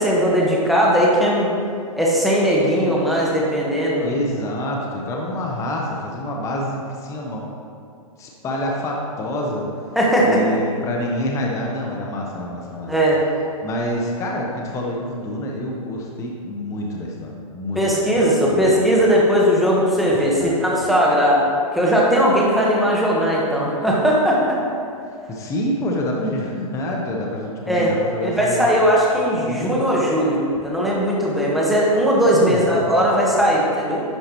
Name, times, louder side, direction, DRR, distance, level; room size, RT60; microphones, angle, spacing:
voice 1, 0.0-1.5 2.0-4.1 9.9-10.4 12.9-13.2 17.7-21.4 21.7-24.6 27.7-27.9 28.2-34.0, equal, ahead, -5 dB, 1.2 m, -18 dB
voice 2, 4.0-7.4 8.2-9.7 10.2-12.9 13.6-18.8 20.4-20.5 25.3-28.7 29.4-29.8 32.3-33.0, left 1 dB, 15° left, -1 dB, 0.8 m, -27 dB
10.5 x 5.6 x 3.0 m, 2.4 s
hypercardioid pair, 135°, 19 cm